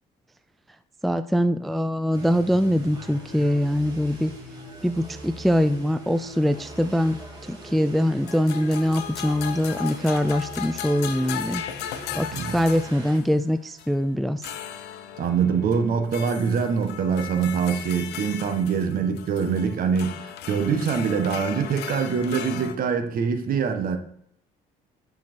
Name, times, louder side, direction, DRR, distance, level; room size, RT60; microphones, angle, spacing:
voice 1, 1.0-4.3 4.8-11.6 12.1-14.4, equal, ahead, 0.4 m, -23 dB
sound 1, 2.1-13.2, right 1 dB, 25° right, 3.6 m, -41 dB
sound 2, 6.5-7.4 8.3-13.4 13.8-14.0 14.4-22.7, left 10 dB, 80° left, 0.9 m, -37 dB
voice 2, 15.2-24.0, right 6 dB, 60° right, 1.5 m, -24 dB
10.5 x 5.7 x 4.6 m
cardioid pair, 110°, 17 cm